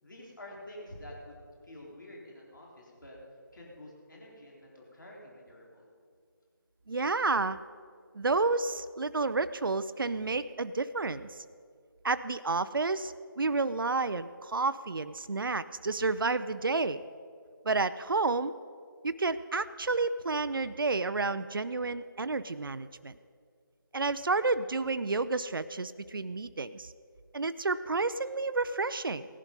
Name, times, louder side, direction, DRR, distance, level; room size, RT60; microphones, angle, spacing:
voice 1, 0.0-3.2 3.5-5.9, left 1 dB, 60° left, -3 dB, 3.9 m, -48 dB
voice 2, 6.9-7.6 8.1-11.4 12.0-17.0 17.6-18.5 19.0-23.1 23.9-26.9 27.3-29.2, right 3 dB, 70° right, 13 dB, 0.5 m, -30 dB
17.5 x 11.0 x 5.3 m, 2.2 s
figure-of-eight pair, 160°, 12 cm